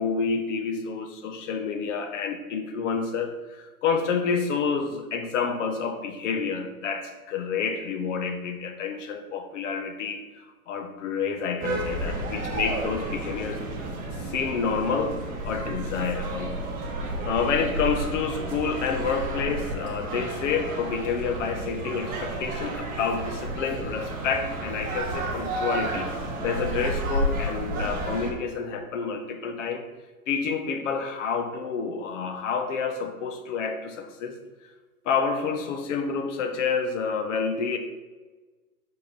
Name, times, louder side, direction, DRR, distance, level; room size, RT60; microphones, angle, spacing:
voice 1, 0.0-13.6 14.2-16.6 17.2-26.1 26.4-29.9 30.3-34.4 35.0-37.8, left 5 dB, 55° left, 6 dB, 1.0 m, -29 dB
sound 1, 11.6-28.3, right 1 dB, 20° right, 1.1 m, -31 dB
5.2 x 4.9 x 4.0 m, 1.2 s
hypercardioid pair, 130°, 45 cm